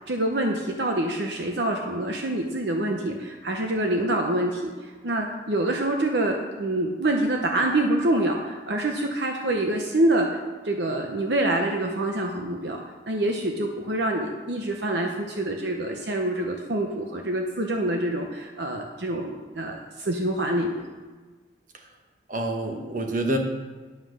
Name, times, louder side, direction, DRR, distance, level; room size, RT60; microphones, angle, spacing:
voice 1, 0.1-20.8, right 1 dB, 65° right, 2 dB, 0.8 m, -26 dB
voice 2, 22.3-23.4, right 1 dB, 45° right, 3 dB, 1.1 m, -27 dB
9.6 x 5.7 x 6.4 m, 1.4 s
head